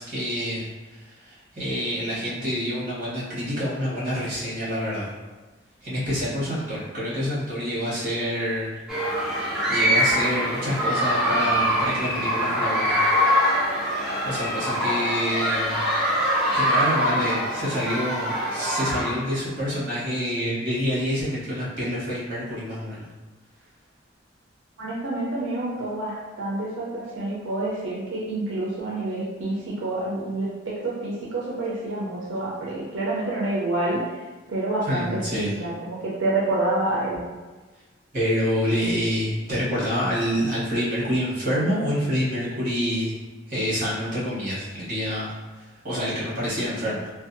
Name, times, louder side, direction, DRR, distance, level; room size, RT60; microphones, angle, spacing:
voice 1, 0.0-5.1 5.8-8.8 9.7-13.0 13.3-13.4 14.2-15.9 16.5-23.1 34.9-35.6 38.1-43.1 43.5-47.1, equal, 45° right, -8 dB, 1.1 m, -27 dB
sound 1, 8.9-19.4, equal, ahead, 0.5 m, -24 dB
voice 2, 24.8-34.2 34.5-37.2, right 2 dB, 80° right, -5 dB, 0.5 m, -28 dB
2.5 x 2.2 x 2.5 m, 1.3 s
head